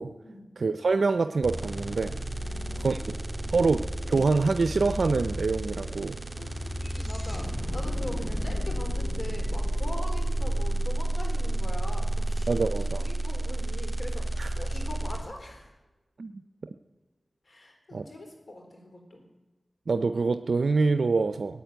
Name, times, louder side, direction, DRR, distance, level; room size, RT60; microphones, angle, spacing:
voice 1, 0.6-2.1 2.8-3.0 3.5-6.2 12.5-13.1 14.4-14.5 16.2-16.3 17.9-18.0 19.9-21.6, right 4 dB, 80° right, 9 dB, 0.5 m, -25 dB
sound 1, 1.4-15.2, right 1 dB, 20° right, 3.4 m, -31 dB
voice 2, 2.4-3.7 6.3-15.8 17.4-19.3, left 1 dB, 65° left, 2 dB, 3.9 m, -42 dB
sound 2, 4.0-4.1 4.2-12.5, left 1 dB, 30° left, 4.4 m, -37 dB
16.5 x 8.9 x 9.1 m, 1.1 s
wide cardioid pair, 55°, 0 cm